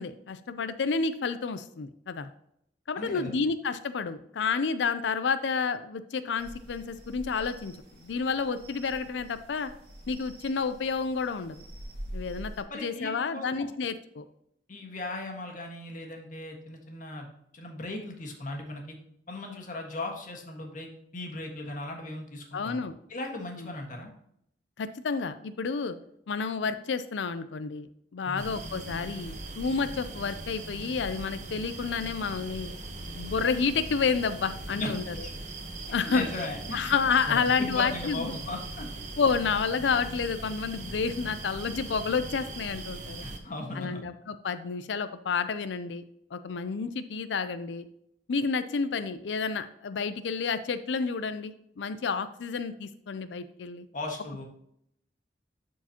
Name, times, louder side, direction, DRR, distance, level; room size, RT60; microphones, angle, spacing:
voice 1, 0.0-2.3 2.9-7.8 8.0-9.7 10.1-11.6 12.1-14.3 22.5-22.9 23.6-23.7 24.8-26.0 26.3-27.9 28.1-35.1 35.9-36.3 36.7-38.3 39.2-43.2 43.8-46.0 46.3-47.9 48.3-53.9, left 5 dB, 75° left, 11 dB, 0.5 m, -30 dB
voice 2, 3.0-3.3 12.7-13.7 14.7-17.3 17.5-19.0 19.3-24.1 28.2-28.5 34.8-34.9 35.2-35.3 36.0-36.9 37.3-38.9 43.2-44.0 53.9-54.4, left 2 dB, 50° left, 1 dB, 1.6 m, -37 dB
sound 1, 6.4-12.6, equal, 60° right, 2.0 m, -45 dB
sound 2, 28.4-43.4, right 2 dB, 45° right, 1.0 m, -40 dB
11.5 x 4.6 x 2.9 m, 0.74 s
head